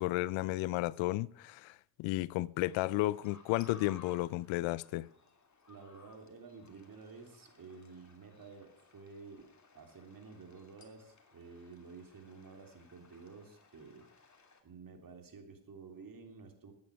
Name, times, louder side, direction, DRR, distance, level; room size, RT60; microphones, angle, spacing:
voice 1, 0.0-5.1, left 18 dB, 70° left, 0.6 m, -33 dB
sound 1, 2.6-14.6, left 4 dB, 35° left, 2.8 m, -61 dB
voice 2, 5.7-9.5 9.7-14.1 14.6-16.7, right 4 dB, 45° right, 3.3 m, -52 dB
13.5 x 9.6 x 6.3 m
supercardioid pair, 55°, 48 cm